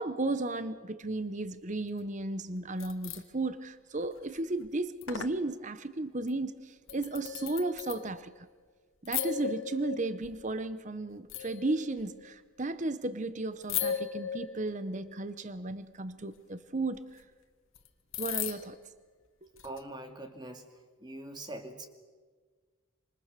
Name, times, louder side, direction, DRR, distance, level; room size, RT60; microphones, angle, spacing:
voice 1, 0.0-8.5 9.0-17.2 18.2-18.8, right 2 dB, 35° right, 13 dB, 0.8 m, -34 dB
sound 1, 2.6-3.2 4.0-4.4 4.6-4.7 5.0-5.4 6.3-6.4 6.9-8.4 9.0-10.6 11.3-12.3 13.6-15.1 16.9-17.0 17.7-17.9 18.1-18.9 19.6-19.8, left 9 dB, 85° left, 1.7 m, -37 dB
voice 2, 19.6-20.6 21.0-21.9, right 1 dB, 20° right, 5 dB, 2.4 m, -42 dB
27.5 x 27.0 x 6.7 m, 1.5 s
head